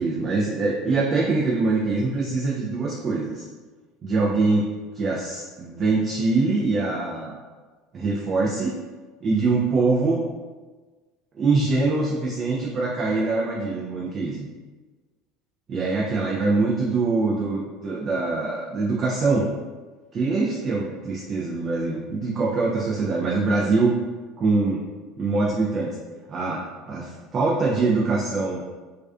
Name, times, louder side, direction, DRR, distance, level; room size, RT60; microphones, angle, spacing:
voice 1, 0.0-3.5 4.0-4.7 4.9-7.4 7.9-8.7 9.2-10.2 11.4-14.5 15.7-19.5 20.1-23.9 24.4-24.8 25.2-25.9 26.3-28.6, right 3 dB, 40° right, -4 dB, 0.4 m, -23 dB
2.3 x 2.3 x 2.3 m, 1.3 s
hypercardioid pair, 90°, 0 cm